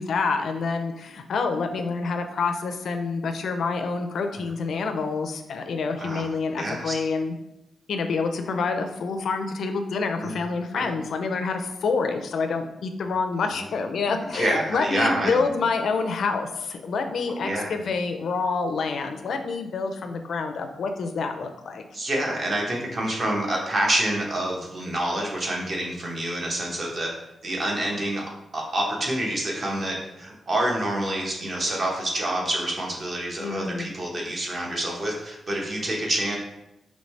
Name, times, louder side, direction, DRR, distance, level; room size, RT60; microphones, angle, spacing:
voice 1, 0.0-7.3 7.9-21.8 33.4-33.9, left 4 dB, 65° left, 5 dB, 0.4 m, -27 dB
voice 2, 6.6-6.9 10.2-10.3 10.7-10.9 14.3-15.4 17.4-17.8 21.9-27.1 27.4-28.2 28.5-36.4, right 1 dB, 40° right, -1 dB, 1.0 m, -27 dB
5.3 x 3.1 x 3.2 m, 0.89 s
wide cardioid pair, 165°, 0 cm